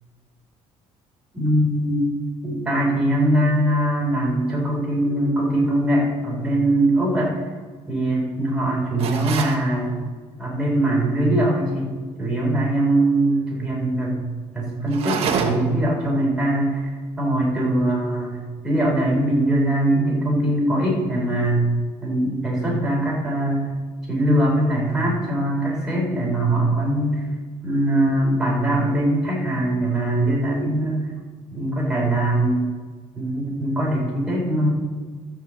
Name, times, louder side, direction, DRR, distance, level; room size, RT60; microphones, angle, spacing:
voice 1, 1.3-2.1 2.4-7.3 7.9-10.0 10.4-14.2 14.5-16.9 17.2-18.4 18.6-21.7 22.0-23.7 24.1-27.2 27.6-31.1 31.5-32.6 33.2-34.7, right 1 dB, 5° right, -5 dB, 4.2 m, -21 dB
sound 1, 9.0-9.6 14.9-15.8, right 6 dB, 55° right, 1.3 m, -26 dB
12.5 x 5.9 x 7.8 m, 1.5 s
cardioid pair, 170°, 12 cm